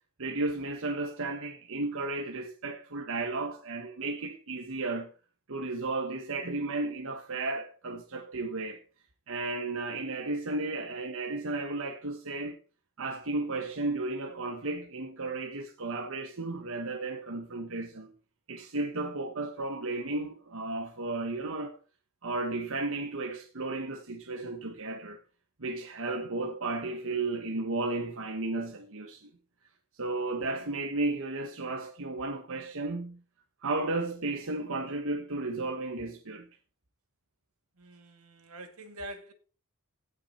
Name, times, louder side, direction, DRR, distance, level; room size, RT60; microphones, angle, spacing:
voice 1, 0.2-5.1 5.5-8.8 9.3-12.6 13.0-18.1 18.5-21.8 22.2-25.2 25.6-29.3 30.0-33.2 33.6-36.5, right 2 dB, 65° right, 1.3 m, -34 dB
voice 2, 37.8-39.3, right 1 dB, 85° right, 2.2 m, -45 dB
16.5 x 6.1 x 4.3 m
head